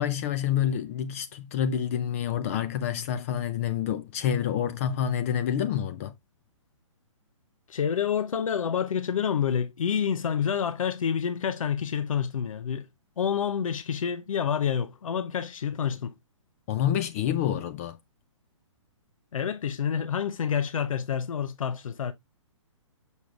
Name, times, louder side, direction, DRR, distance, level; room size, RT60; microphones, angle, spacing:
voice 1, 0.0-6.1 16.7-18.0, left 9 dB, 25° left, 0.4 m, -28 dB
voice 2, 7.7-12.9 13.2-16.1 19.3-22.1, left 7 dB, 85° left, 0.7 m, -28 dB
6.8 x 6.3 x 2.4 m
hypercardioid pair, 155°, 17 cm